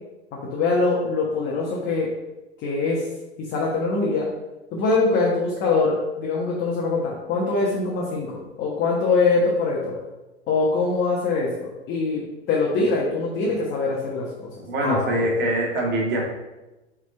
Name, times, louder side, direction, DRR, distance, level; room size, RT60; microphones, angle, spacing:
voice 1, 0.3-2.1 2.6-3.0 3.4-4.3 4.7-9.9 10.5-14.5 14.8-15.2, left 3 dB, 35° left, -3 dB, 1.4 m, -23 dB
voice 2, 14.6-16.2, right 1 dB, 35° right, -2 dB, 2.0 m, -23 dB
6.2 x 3.9 x 4.4 m, 1.1 s
figure-of-eight pair, 85°, 32 cm